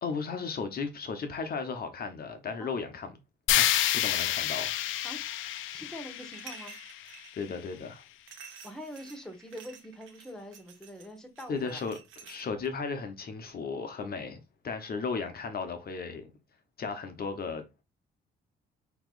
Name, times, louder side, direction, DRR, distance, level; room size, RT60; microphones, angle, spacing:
voice 1, 0.0-3.1 3.5-4.7 7.4-8.0 11.5-12.0 12.3-16.3 16.8-17.7, left 5 dB, 50° left, 1.0 m, -35 dB
sound 1, 3.5-7.6, left 12 dB, 80° left, 0.5 m, -29 dB
voice 2, 5.7-6.8 8.6-11.9, equal, 5° left, 1.4 m, -44 dB
sound 2, 6.2-7.3 8.3-12.7, right 7 dB, 80° right, 1.1 m, -50 dB
5.7 x 3.0 x 2.5 m
cardioid pair, 90°, 20 cm